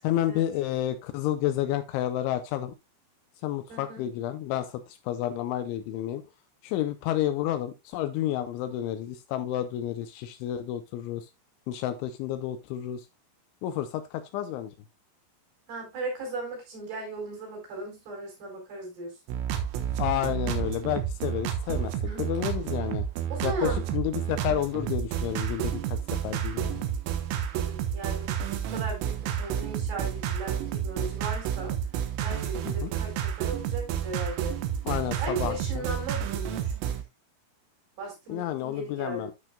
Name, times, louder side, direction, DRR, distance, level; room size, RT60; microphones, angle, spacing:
voice 1, 0.0-2.7 3.4-6.2 6.6-11.3 11.7-13.0 13.6-14.7 20.0-21.9 22.2-23.0 23.4-26.9 32.8-32.9 34.9-35.9 38.3-39.3, left 12 dB, 85° left, 2.9 m, -30 dB
voice 2, 3.7-4.1 15.7-19.1 22.0-22.3 23.3-23.9 27.5-31.8 32.2-34.5 35.2-36.7 38.0-39.3, right 2 dB, 55° right, 6.1 m, -37 dB
sound 1, 19.3-37.0, right 9 dB, 85° right, 3.7 m, -30 dB
12.0 x 6.2 x 2.3 m
omnidirectional pair, 5.7 m